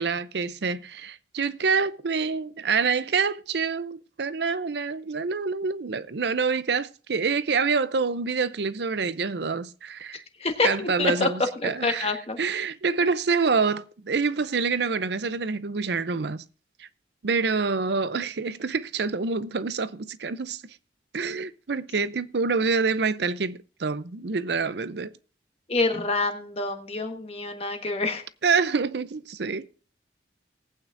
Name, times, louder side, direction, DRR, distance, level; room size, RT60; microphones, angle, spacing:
voice 1, 0.0-10.2 10.6-12.1 12.4-16.4 16.8-16.9 17.2-20.6 21.1-25.1 28.4-29.7, right 4 dB, 65° right, 0.6 m, -26 dB
voice 2, 10.4-11.3 11.6-12.4 25.7-28.2, left 3 dB, 30° left, 1.4 m, -27 dB
20.0 x 8.9 x 2.6 m
head